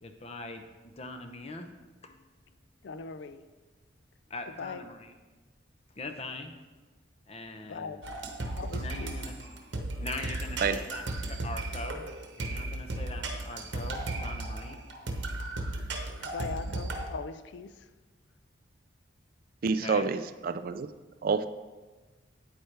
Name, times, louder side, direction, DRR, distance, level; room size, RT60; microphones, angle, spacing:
voice 1, 0.0-1.7 2.0-2.4 4.3-5.1 6.0-6.5 7.3-8.0 8.8-9.3 10.0-12.0 12.4-14.8 19.8-20.1, left 2 dB, 35° left, 0.7 m, -42 dB
voice 2, 2.8-3.5 4.5-4.8 7.6-8.0 8.6-9.2 16.2-17.9, left 4 dB, 70° left, 0.4 m, -40 dB
sound 1, 8.0-17.1, right 2 dB, 70° right, 0.9 m, -35 dB
voice 3, 19.6-20.9 21.2-21.5, right 5 dB, 50° right, 0.3 m, -28 dB
8.9 x 8.9 x 3.3 m
head